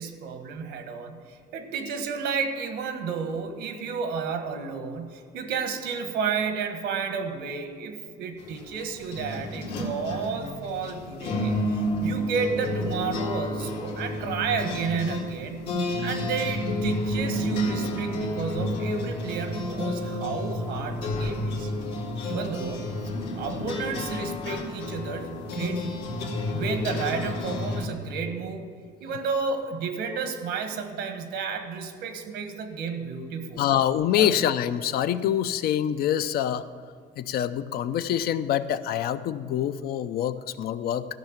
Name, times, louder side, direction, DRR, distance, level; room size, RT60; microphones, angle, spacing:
voice 1, 0.0-15.6 16.0-21.7 22.2-22.9 23.3-26.1 26.5-28.6 29.0-33.6 34.2-34.3, right 5 dB, 80° right, 7 dB, 1.4 m, -32 dB
sound 1, 8.4-27.9, left 1 dB, 80° left, 2.2 m, -30 dB
voice 2, 33.6-36.7 37.2-41.1, left 10 dB, 65° left, 12 dB, 0.5 m, -25 dB
13.5 x 5.7 x 7.3 m, 2.1 s
cardioid pair, 110°, 17 cm